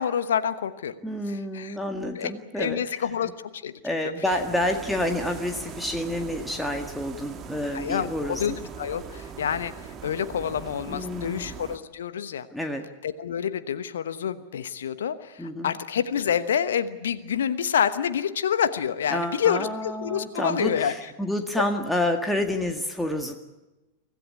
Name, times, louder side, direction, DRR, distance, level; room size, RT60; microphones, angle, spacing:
voice 1, 0.0-0.9 1.3-1.8 2.1-4.0 7.7-12.5 13.0-20.9, left 8 dB, 65° left, 12 dB, 1.1 m, -28 dB
voice 2, 1.0-3.1 3.8-8.6 10.9-11.5 12.5-12.9 15.4-15.7 19.1-23.3, left 1 dB, ahead, 3 dB, 1.9 m, -29 dB
sound 1, 4.3-11.8, right 7 dB, 30° right, 1.9 m, -41 dB
25.0 x 16.0 x 9.7 m, 1.1 s
figure-of-eight pair, 90°, 0 cm